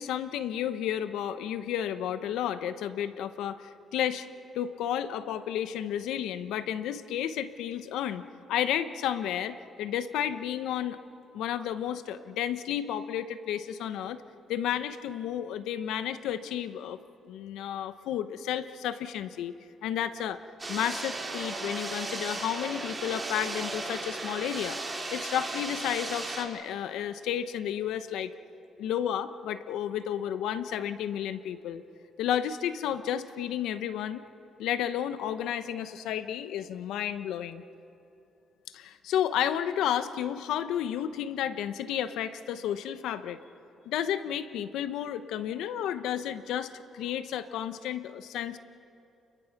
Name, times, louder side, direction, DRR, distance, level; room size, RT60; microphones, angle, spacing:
voice 1, 0.0-4.3 4.5-8.2 8.5-11.0 11.3-14.2 14.5-17.0 17.2-19.5 19.8-20.4 20.7-24.8 25.1-28.3 28.8-31.8 32.2-34.2 34.6-37.6 38.7-43.4 43.8-48.6, left 10 dB, 85° left, 11 dB, 1.0 m, -32 dB
sound 1, 20.6-26.4, right 2 dB, 20° right, 3.3 m, -36 dB
29.5 x 22.0 x 6.0 m, 2.7 s
cardioid pair, 90°, 0 cm